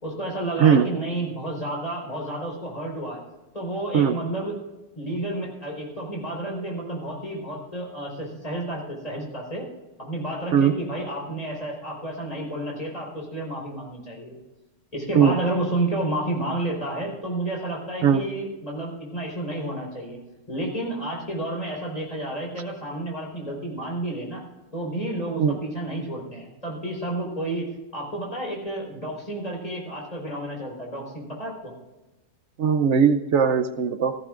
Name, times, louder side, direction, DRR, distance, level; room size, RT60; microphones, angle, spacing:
voice 1, 0.0-3.2 3.5-4.6 4.9-9.7 10.0-14.3 14.9-20.2 20.5-24.4 24.7-31.7, right 1 dB, 20° left, -2 dB, 4.4 m, -31 dB
voice 2, 32.6-34.2, right 7 dB, 65° right, 9 dB, 0.7 m, -19 dB
16.0 x 14.5 x 2.5 m, 1.1 s
omnidirectional pair, 1.9 m